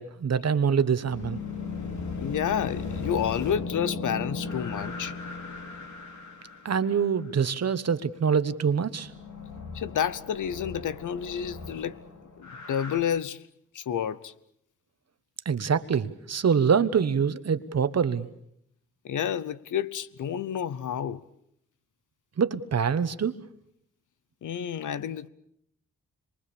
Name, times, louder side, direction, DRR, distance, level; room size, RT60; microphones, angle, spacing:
voice 1, 0.0-1.4 6.6-9.1 15.4-18.3 22.4-23.3, right 6 dB, 55° right, 1.3 m, -25 dB
sound 1, 1.0-7.1 9.0-13.0, left 4 dB, 70° left, 2.9 m, -37 dB
voice 2, 2.2-5.1 9.7-12.0 12.4-13.4 13.7-14.3 19.0-21.2 24.4-25.3, left 8 dB, 85° left, 0.9 m, -30 dB
26.0 x 23.5 x 7.0 m
cardioid pair, 85°, 30 cm